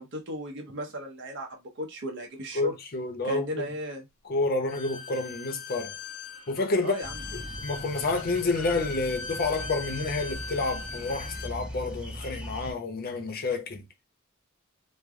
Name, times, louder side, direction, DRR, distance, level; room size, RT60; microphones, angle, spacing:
voice 1, 0.0-2.8 3.2-4.1 6.8-7.2, equal, 60° right, 0.8 m, -35 dB
voice 2, 2.6-3.7 4.3-5.9 6.5-6.9 7.3-13.8, left 3 dB, 45° left, 0.7 m, -29 dB
Bowed string instrument, 4.7-11.5, left 4 dB, 80° left, 0.6 m, -40 dB
sound 1, 7.0-12.7, equal, 5° right, 0.6 m, -40 dB
3.2 x 2.1 x 3.6 m
head